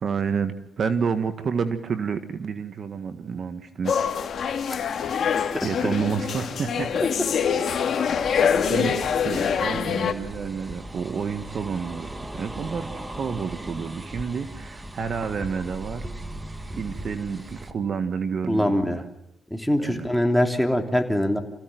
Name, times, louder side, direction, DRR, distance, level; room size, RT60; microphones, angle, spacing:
voice 1, 0.0-4.1 5.6-7.0 8.1-8.4 8.7-16.1 16.7-19.1 19.8-20.1, right 6 dB, 50° right, 10 dB, 1.6 m, -29 dB
sound 1, 3.8-10.1, left 7 dB, 55° left, 2.5 m, -24 dB
sound 2, 8.2-17.7, right 1 dB, 15° right, 1.9 m, -38 dB
voice 2, 18.5-19.0 19.5-21.4, equal, ahead, 4 dB, 3.1 m, -23 dB
27.5 x 16.0 x 9.3 m, 0.83 s
cardioid pair, 90°, 0 cm